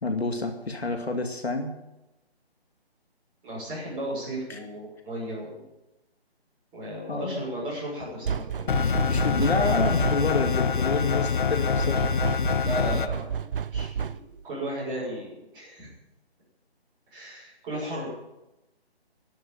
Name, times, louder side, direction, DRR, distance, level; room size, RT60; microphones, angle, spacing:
voice 1, 0.0-1.7 4.5-4.6 7.1-7.4 8.8-12.2, left 3 dB, 75° left, 5 dB, 2.3 m, -28 dB
voice 2, 3.4-5.6 6.7-8.8 12.6-15.9 17.1-18.1, right 1 dB, 15° right, -7 dB, 6.2 m, -35 dB
sound 1, 8.2-10.5 11.8-14.4, right 7 dB, 55° right, 0.6 m, -31 dB
sound 2, 8.7-13.1, left 6 dB, 50° left, 0.7 m, -25 dB
11.5 x 8.2 x 9.1 m, 0.95 s
figure-of-eight pair, 155°, 32 cm